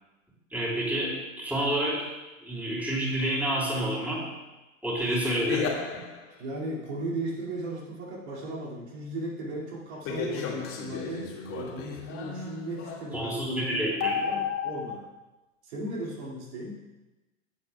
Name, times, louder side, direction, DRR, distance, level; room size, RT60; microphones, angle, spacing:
voice 1, 0.5-2.1 2.4-4.2 4.8-5.7 13.1-14.2, right 1 dB, 5° right, -5 dB, 3.5 m, -28 dB
sound 1, 5.0-6.4 10.0-13.2 14.0-15.0, left 6 dB, 35° left, 2.1 m, -33 dB
voice 2, 6.3-15.0 15.6-16.8, right 1 dB, 55° right, -4 dB, 2.5 m, -36 dB
16.0 x 8.4 x 2.3 m, 1.1 s
figure-of-eight pair, 95°, 39 cm